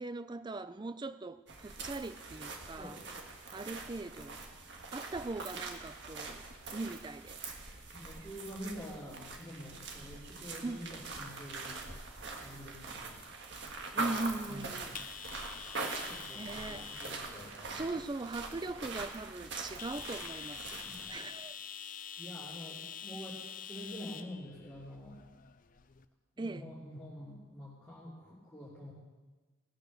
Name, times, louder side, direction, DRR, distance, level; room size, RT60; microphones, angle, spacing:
voice 1, 0.0-3.0 3.5-4.4 4.9-6.5 6.7-7.4 10.6-10.8 13.9-14.9 16.4-16.9 17.7-20.8 21.1-21.6 26.4-26.7, right 2 dB, 20° right, 0.3 m, -40 dB
sound 1, 1.5-21.1, right 3 dB, 55° right, 1.6 m, -43 dB
voice 2, 7.9-11.8 12.4-13.1 13.9-14.9 16.1-18.0 20.7-21.2 22.2-25.2 26.4-28.9, equal, 5° left, 2.8 m, -47 dB
sound 2, 9.9-26.0, left 8 dB, 40° left, 0.5 m, -48 dB
18.0 x 6.7 x 6.5 m
head